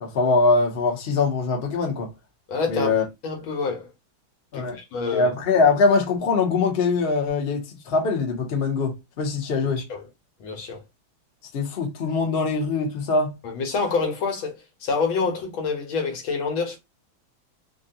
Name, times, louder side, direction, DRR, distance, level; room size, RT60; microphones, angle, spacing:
voice 1, 0.0-2.1 2.7-3.0 4.5-4.8 5.1-9.8 11.5-13.3, left 4 dB, 50° left, 0.7 m, -22 dB
voice 2, 2.5-3.9 4.5-5.3 9.8-10.1 10.4-10.8 13.4-16.8, left 4 dB, 80° left, 1.7 m, -27 dB
3.7 x 2.2 x 2.7 m
omnidirectional pair, 2.2 m